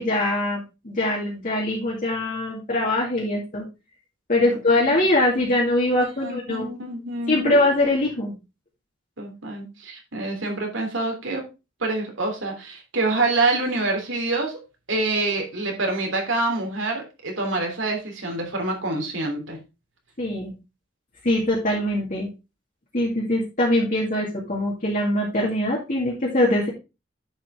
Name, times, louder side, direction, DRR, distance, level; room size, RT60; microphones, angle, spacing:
voice 1, 0.0-3.6 4.3-6.7 7.3-8.3 20.2-20.5 21.2-22.3 22.9-26.7, left 1 dB, 45° left, -4 dB, 2.2 m, -22 dB
voice 2, 6.0-7.6 9.2-11.4 11.8-14.6 14.9-19.6, right 2 dB, 90° right, 2 dB, 3.2 m, -26 dB
9.9 x 5.7 x 3.6 m, 0.27 s
head